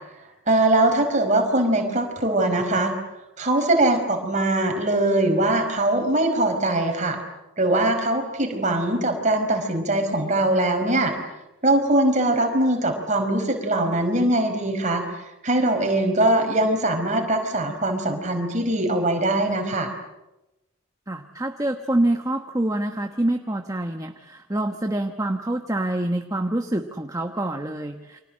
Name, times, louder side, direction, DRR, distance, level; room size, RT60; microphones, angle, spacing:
voice 1, 0.5-2.9 3.4-7.2 7.6-11.1 11.6-15.0 15.4-19.9, right 1 dB, 35° right, 4 dB, 5.0 m, -21 dB
voice 2, 21.1-28.2, right 1 dB, 15° right, 5 dB, 1.2 m, -26 dB
29.5 x 25.0 x 7.7 m, 0.96 s
head